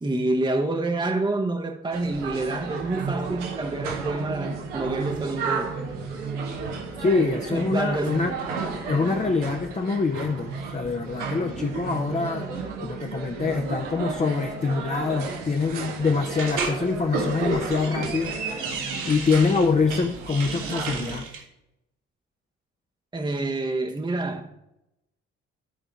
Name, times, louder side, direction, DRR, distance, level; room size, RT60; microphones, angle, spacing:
voice 1, 0.0-5.7 7.2-8.2 23.1-24.5, right 2 dB, 10° right, 0.9 m, -28 dB
sound 1, 1.9-21.2, right 4 dB, 75° right, 1.2 m, -33 dB
voice 2, 7.0-8.3 8.9-12.5 12.8-18.4 19.0-21.3, left 4 dB, 20° left, 0.8 m, -25 dB
sound 2, 16.4-16.8 17.5-19.7 20.1-21.4, right 5 dB, 55° right, 1.8 m, -33 dB
12.0 x 5.0 x 4.6 m
figure-of-eight pair, 40°, 36 cm